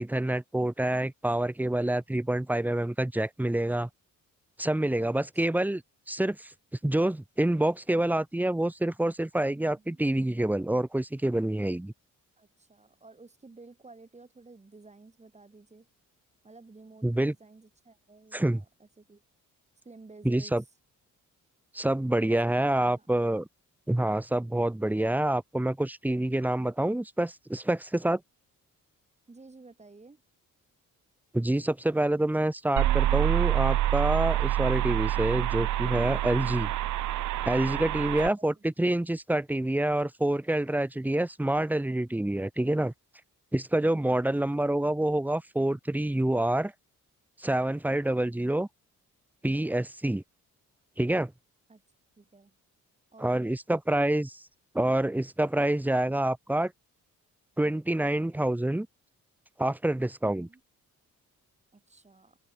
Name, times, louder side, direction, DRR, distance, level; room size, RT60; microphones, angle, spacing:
voice 1, 0.0-3.9 4.6-5.8 6.1-6.5 6.8-11.9 17.0-17.3 18.3-18.6 20.2-20.6 21.7-23.5 23.9-28.2 31.3-36.7 37.4-42.9 43.5-46.7 47.4-48.7 49.4-50.2 51.0-51.3 53.2-54.4 54.7-56.7 57.6-58.9 59.6-60.5, right 1 dB, 5° right, 1.0 m, -27 dB
voice 2, 5.1-5.8 9.5-10.0 12.4-15.9 16.4-19.2 19.8-20.6 22.4-23.1 29.3-30.2 38.0-38.6 51.7-51.8 52.2-52.6 53.1-53.5 60.2-60.6 61.7-62.4, right 3 dB, 20° right, 7.2 m, -53 dB
sound 1, 32.8-38.3, right 14 dB, 65° right, 0.6 m, -27 dB
open air
cardioid pair, 120°, 32 cm